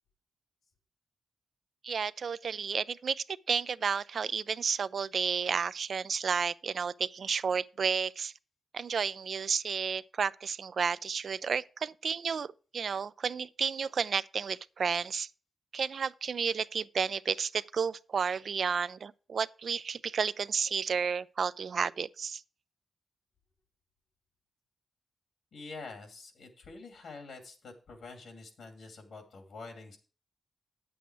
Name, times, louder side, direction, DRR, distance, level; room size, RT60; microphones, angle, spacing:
voice 1, 1.8-8.3 8.7-15.3 15.7-22.4, right 6 dB, 65° right, 0.3 m, -32 dB
voice 2, 25.5-30.0, left 3 dB, 75° left, 2.5 m, -47 dB
9.3 x 7.8 x 4.5 m
cardioid pair, 95°, 0 cm